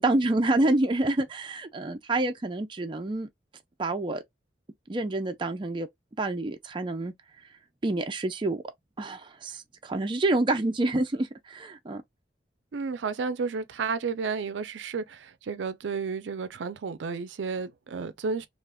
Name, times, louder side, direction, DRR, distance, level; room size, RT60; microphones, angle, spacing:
voice 1, 0.0-3.3 3.8-4.2 4.9-5.9 6.2-7.1 7.8-8.6 9.0-12.0, right 2 dB, 25° right, 0.4 m, -27 dB
voice 2, 12.7-18.5, right 5 dB, 85° right, 0.4 m, -32 dB
2.5 x 2.3 x 3.4 m
head